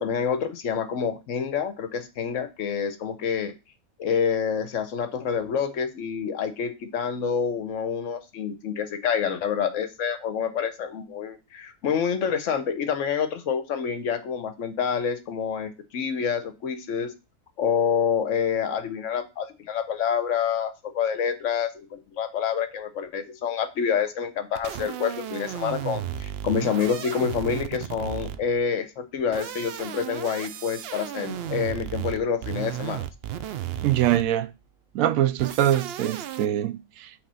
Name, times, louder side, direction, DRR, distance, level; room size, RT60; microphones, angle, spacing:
voice 1, 0.0-3.5 4.0-17.1 17.6-33.0, left 7 dB, 70° left, 1.1 m, -27 dB
sound 1, 24.6-28.6 29.2-34.4 35.4-36.5, right 10 dB, 65° right, 0.6 m, -34 dB
voice 2, 33.8-34.5 34.9-37.3, right 12 dB, 90° right, 1.0 m, -24 dB
5.6 x 3.4 x 5.5 m
omnidirectional pair, 1.4 m